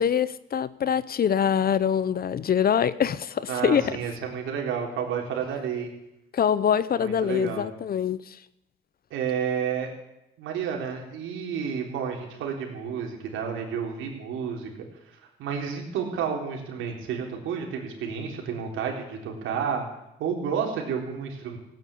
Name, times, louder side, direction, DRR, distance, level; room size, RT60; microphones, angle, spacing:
voice 1, 0.0-4.0 6.3-8.2, left 8 dB, 50° left, 17 dB, 0.8 m, -24 dB
voice 2, 3.5-5.9 7.0-7.6 9.1-9.9 10.4-14.7 15.4-19.9 20.2-21.6, right 7 dB, 90° right, 1 dB, 3.7 m, -30 dB
16.5 x 9.4 x 8.6 m, 0.87 s
cardioid pair, 90°, 20 cm